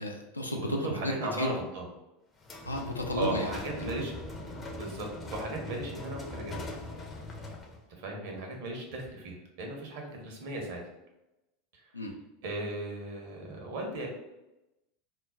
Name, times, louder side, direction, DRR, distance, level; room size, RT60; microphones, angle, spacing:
voice 1, 0.0-1.5 2.7-3.9 11.9-12.1, left 1 dB, 90° left, 2 dB, 0.4 m, -33 dB
voice 2, 0.6-1.9 3.2-4.1 4.7-6.6 8.0-10.8 12.4-14.1, right 2 dB, 60° right, 1 dB, 0.7 m, -36 dB
sound 1, 2.4-7.9, left 2 dB, 25° left, 0.5 m, -41 dB
2.2 x 2.1 x 3.5 m, 0.95 s
figure-of-eight pair, 80°, 0 cm